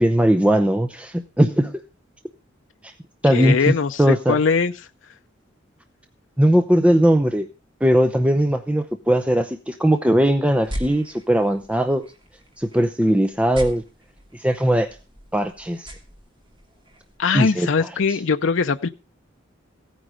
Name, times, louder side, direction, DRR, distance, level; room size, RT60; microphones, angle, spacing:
voice 1, 0.0-1.8 2.8-2.9 3.2-4.4 6.4-7.5 7.8-12.1 12.6-13.8 14.3-14.9 15.3-15.9 17.3-18.2, equal, 5° right, 0.7 m, -19 dB
voice 2, 3.3-4.7 17.2-18.9, left 5 dB, 70° left, 0.6 m, -21 dB
sound 1, 10.5-17.2, equal, 25° right, 2.7 m, -39 dB
16.0 x 9.3 x 5.0 m
head